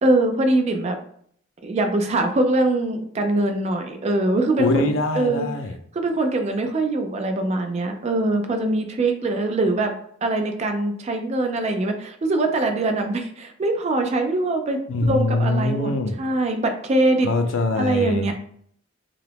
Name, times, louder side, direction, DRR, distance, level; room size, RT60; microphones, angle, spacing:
voice 1, 0.0-1.0 1.6-4.8 5.1-5.5 5.9-9.9 10.2-17.3 17.8-18.3, right 2 dB, 35° right, 5 dB, 0.3 m, -22 dB
voice 2, 4.6-5.8 14.9-16.1 17.2-18.3, left 2 dB, 80° left, 6 dB, 0.4 m, -23 dB
2.8 x 2.4 x 3.3 m, 0.62 s
head